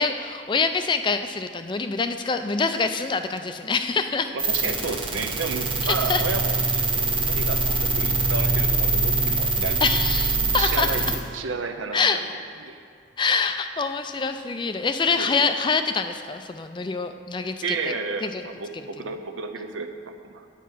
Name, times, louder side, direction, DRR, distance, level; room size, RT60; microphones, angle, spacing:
voice 1, 0.0-4.4 6.1-6.2 9.8-10.9 11.9-12.2 13.2-17.8 18.2-18.4, left 4 dB, 25° left, 8 dB, 0.3 m, -25 dB
voice 2, 4.3-10.0 10.6-12.3 12.6-12.8 15.2-15.3 17.6-20.5, right 4 dB, 80° right, 7 dB, 0.7 m, -32 dB
sound 1, 4.4-11.2, right 3 dB, 25° right, 1.1 m, -24 dB
8.6 x 8.3 x 5.5 m, 2.3 s
head